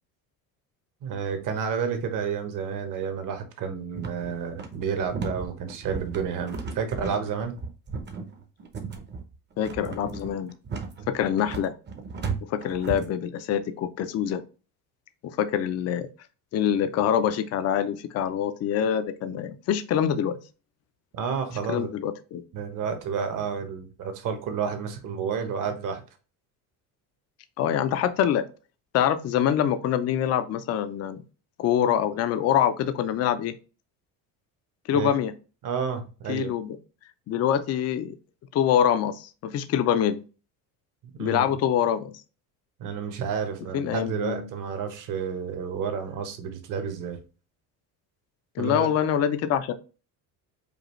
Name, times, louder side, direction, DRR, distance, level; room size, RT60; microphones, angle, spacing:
voice 1, 1.0-7.6 21.1-21.9 22.5-26.0 34.9-35.1 35.6-36.5 41.2-41.4 42.8-47.2 48.6-48.9, right 6 dB, 50° right, 1.1 m, -30 dB
sound 1, 3.9-13.1, right 4 dB, 25° right, 0.7 m, -35 dB
voice 2, 9.6-10.5 11.1-11.7 12.5-14.4 15.4-16.1 16.5-20.4 21.7-22.4 27.6-28.5 28.9-31.2 31.6-33.5 34.9-35.3 36.3-36.8 37.3-38.1 38.5-40.2 41.2-42.1 43.7-44.5 48.6-49.7, left 9 dB, 40° left, 0.5 m, -25 dB
5.1 x 2.4 x 3.0 m
cardioid pair, 130°, 39 cm